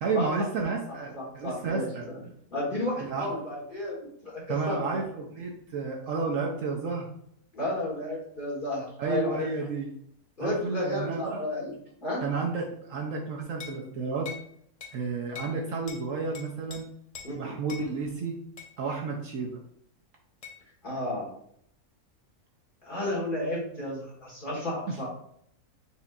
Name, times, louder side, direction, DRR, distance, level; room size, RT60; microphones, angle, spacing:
voice 1, 0.0-2.0 3.1-3.3 4.5-7.1 9.0-9.9 10.4-11.4 12.2-14.3 14.9-16.8 17.3-18.4 18.8-19.6 24.9-25.0, right 4 dB, 65° right, 0 dB, 0.9 m, -31 dB
voice 2, 1.1-2.2 2.5-3.9 4.2-5.0 7.5-9.5 10.4-11.7 12.0-12.2 17.2-17.6 20.8-21.3 22.8-25.1, left 1 dB, 35° left, -5 dB, 1.5 m, -32 dB
sound 1, 13.6-13.8 14.2-14.5 14.8-15.0 15.3-15.6 15.9-16.0 16.3-16.8 17.1-17.3 17.7-17.9 18.6-18.7 20.4-20.6, left 6 dB, 70° left, 0.3 m, -42 dB
4.3 x 4.1 x 2.4 m, 0.69 s
omnidirectional pair, 1.6 m